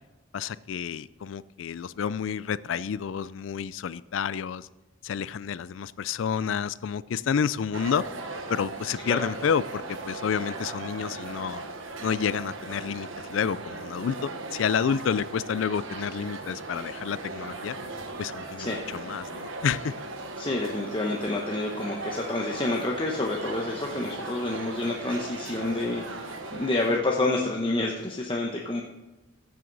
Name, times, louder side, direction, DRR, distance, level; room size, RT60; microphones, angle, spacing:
voice 1, 0.3-4.7 5.0-8.0 8.5-11.6 12.0-17.8 18.2-19.9, left 7 dB, 75° left, 18 dB, 0.4 m, -29 dB
sound 1, 7.7-27.0, right 3 dB, 80° right, 1.3 m, -38 dB
voice 2, 20.4-28.8, left 2 dB, 25° left, -1 dB, 1.0 m, -28 dB
14.5 x 7.8 x 4.0 m, 1.1 s
head